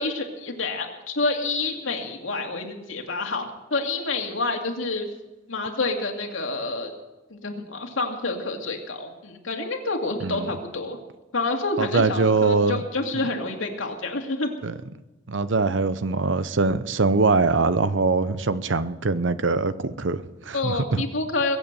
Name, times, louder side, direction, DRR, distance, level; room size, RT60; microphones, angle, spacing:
voice 1, 0.0-3.4 3.7-5.1 5.5-6.9 7.3-11.0 11.3-14.5 20.5-21.6, left 3 dB, 85° left, 2.4 m, -28 dB
voice 2, 11.8-12.8 13.1-13.3 14.6-14.7 15.3-21.0, right 3 dB, 70° right, 0.8 m, -23 dB
22.0 x 8.4 x 6.8 m
head